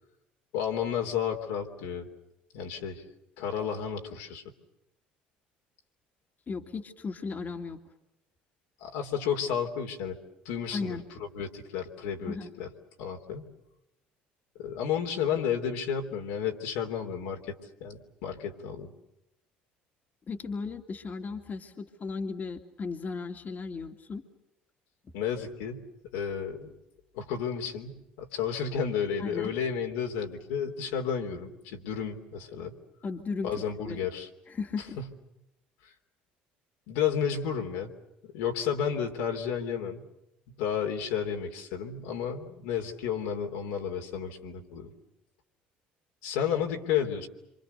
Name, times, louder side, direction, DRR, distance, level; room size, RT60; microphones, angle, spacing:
voice 1, 0.5-2.1 2.5-3.0 3.4-4.4 8.8-10.2 10.4-12.7 13.0-13.4 14.6-18.9 25.1-25.8 26.1-26.7 27.1-32.8 33.4-34.3 35.0-35.1 35.8-35.9 36.9-37.9 38.3-40.1 40.5-44.9 46.2-47.3, left 7 dB, 75° left, 2 dB, 3.3 m, -32 dB
voice 2, 6.5-7.8 10.7-11.0 12.3-12.5 20.3-24.2 29.2-29.5 33.0-33.5 33.9-34.0 34.5-35.0, left 4 dB, 40° left, 5 dB, 2.4 m, -36 dB
26.5 x 26.0 x 6.8 m, 0.87 s
hypercardioid pair, 65°, 5 cm